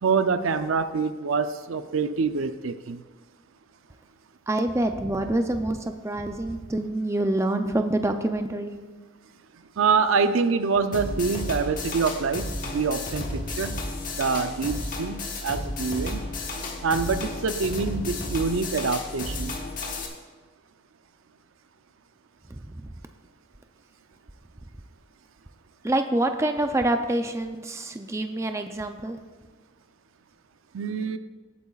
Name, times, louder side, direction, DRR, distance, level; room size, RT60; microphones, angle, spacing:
voice 1, 0.0-3.0 9.8-13.7 14.2-16.2 16.8-19.6 30.7-31.2, right 5 dB, 80° right, 11 dB, 0.5 m, -25 dB
voice 2, 4.5-8.7 22.5-22.9 25.8-29.2, right 1 dB, 15° right, 6 dB, 0.5 m, -26 dB
sound 1, 10.9-20.1, left 2 dB, 40° left, 1.3 m, -32 dB
18.0 x 8.5 x 2.4 m, 1.4 s
head